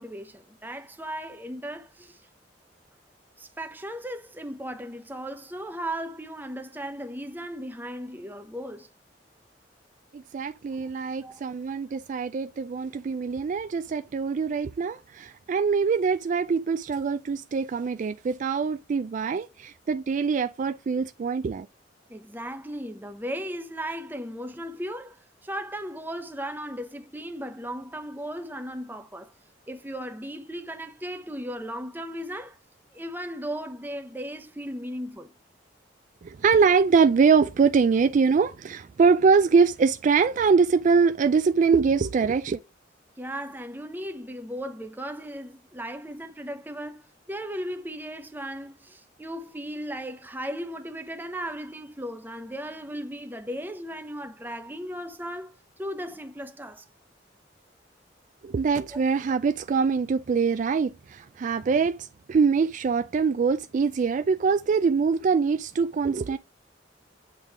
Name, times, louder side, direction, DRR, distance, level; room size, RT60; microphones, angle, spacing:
voice 1, 0.0-2.2 3.4-8.9 11.2-11.4 22.1-25.2 25.4-29.3 29.7-32.6 32.9-35.3 43.2-55.5 55.8-56.9 58.9-59.0, equal, 10° right, 0.9 m, -36 dB
voice 2, 10.1-21.7 36.2-42.6 58.4-66.4, right 5 dB, 45° right, 0.3 m, -23 dB
8.1 x 3.8 x 4.8 m
head